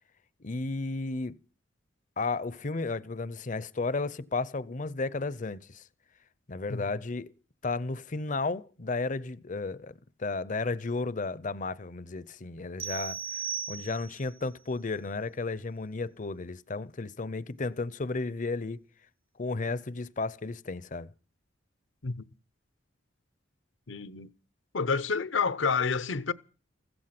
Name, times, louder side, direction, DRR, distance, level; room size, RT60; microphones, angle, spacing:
voice 1, 0.4-1.4 2.2-5.8 6.5-7.3 7.6-9.9 10.2-18.8 19.4-21.1, left 3 dB, 40° left, 0.7 m, -33 dB
sound 1, 12.8-14.3, right 7 dB, 30° right, 0.7 m, -36 dB
voice 2, 23.9-24.3 24.7-26.3, left 5 dB, 75° left, 0.8 m, -29 dB
16.0 x 14.0 x 6.0 m
head